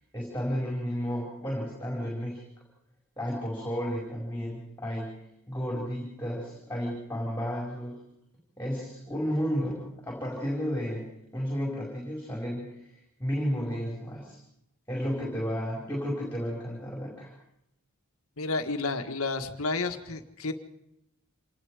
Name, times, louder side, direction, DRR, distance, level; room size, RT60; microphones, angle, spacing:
voice 1, 0.1-2.5 3.2-5.2 5.5-8.1 8.6-14.4 14.9-17.3, equal, 10° left, -3 dB, 5.3 m, -32 dB
voice 2, 18.4-20.5, left 3 dB, 70° left, 7 dB, 1.7 m, -31 dB
27.0 x 19.5 x 5.0 m, 0.81 s
head